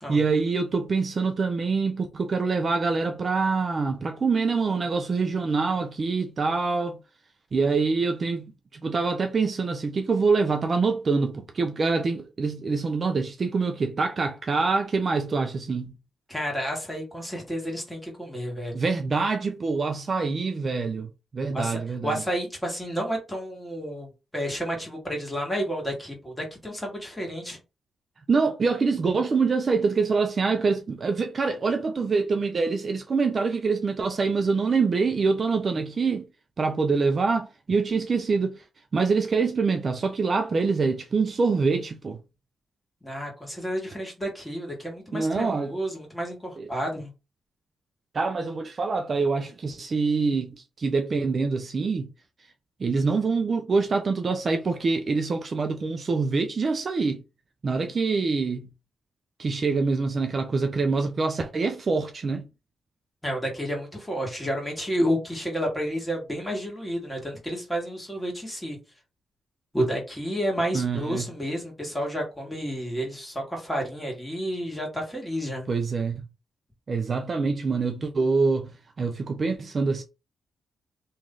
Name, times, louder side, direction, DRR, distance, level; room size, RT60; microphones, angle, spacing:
voice 1, 0.1-7.0 7.5-15.9 18.7-22.2 28.3-36.3 36.6-38.6 38.9-42.2 45.1-45.7 46.6-46.7 48.1-52.1 52.8-57.2 57.6-58.7 59.4-62.4 70.7-71.3 75.7-76.2 76.9-78.7 79.0-80.0, right 4 dB, 40° right, 0.5 m, -25 dB
voice 2, 16.3-18.8 21.5-27.6 43.0-47.1 63.2-68.8 69.7-75.7, equal, 5° left, 1.6 m, -30 dB
3.1 x 2.7 x 3.7 m
cardioid pair, 115°, 0 cm